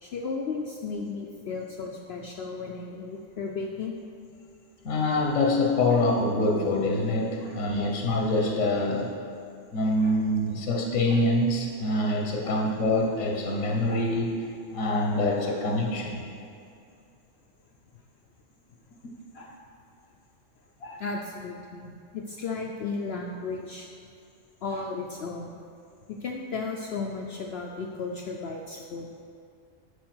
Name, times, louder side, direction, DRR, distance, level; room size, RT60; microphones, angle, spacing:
voice 1, 0.0-4.0 5.9-6.0 7.4-7.6 8.7-8.9 10.0-10.2 11.1-11.2 12.4-12.6 13.9-14.1 15.4-15.6 19.3-19.5 20.8-23.9 24.6-25.5 26.1-29.1, left 4 dB, 60° left, 1 dB, 0.8 m, -35 dB
voice 2, 4.8-9.1 9.7-14.3 14.7-16.2, left 2 dB, 80° left, -1 dB, 1.4 m, -25 dB
11.5 x 4.8 x 6.1 m, 2.5 s
omnidirectional pair, 1.3 m